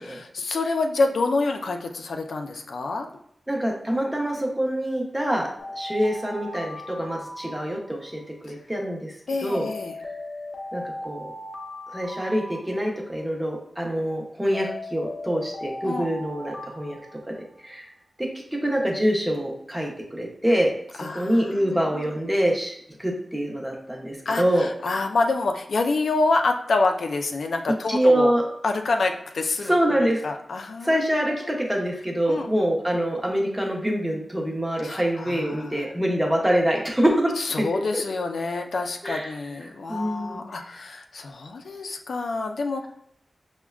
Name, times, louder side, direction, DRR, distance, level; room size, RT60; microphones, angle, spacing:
voice 1, 0.0-3.1 8.5-8.6 9.3-10.0 15.8-16.1 21.0-22.0 24.3-28.3 28.6-31.1 31.4-31.5 32.3-32.5 34.8-35.9 37.4-42.9, left 3 dB, 85° left, 4 dB, 0.4 m, -27 dB
voice 2, 3.5-5.5 5.8-9.1 9.4-9.7 10.7-11.3 11.9-17.0 17.3-17.4 17.6-17.9 18.2-18.3 18.6-24.7 27.9-28.4 29.6-30.2 30.8-37.3 37.7-38.0 39.0-39.3 39.9-40.4 40.7-40.8, equal, 10° right, -1 dB, 0.7 m, -25 dB
Alarm, 5.6-8.2 9.5-13.2 14.5-17.8, left 1 dB, 30° left, 0.7 m, -38 dB
5.9 x 2.1 x 2.3 m, 0.70 s
wide cardioid pair, 115°, 0 cm